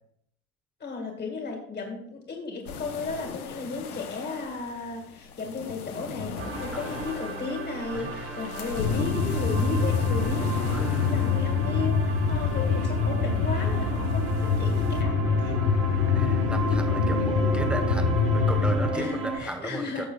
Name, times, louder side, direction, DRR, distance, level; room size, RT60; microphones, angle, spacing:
voice 1, 0.8-15.6 18.9-20.1, left 4 dB, 25° left, 1 dB, 2.0 m, -34 dB
sound 1, 2.7-15.0, left 6 dB, 80° left, 1.0 m, -40 dB
sound 2, 6.4-19.4, right 2 dB, 30° right, 1.7 m, -35 dB
voice 2, 6.7-7.1 7.9-8.3 10.7-11.1 16.1-20.0, right 1 dB, ahead, 6 dB, 1.1 m, -36 dB
sound 3, 8.8-18.9, left 5 dB, 60° left, 1.7 m, -25 dB
16.0 x 6.5 x 2.3 m, 0.72 s
hypercardioid pair, 75°, 43 cm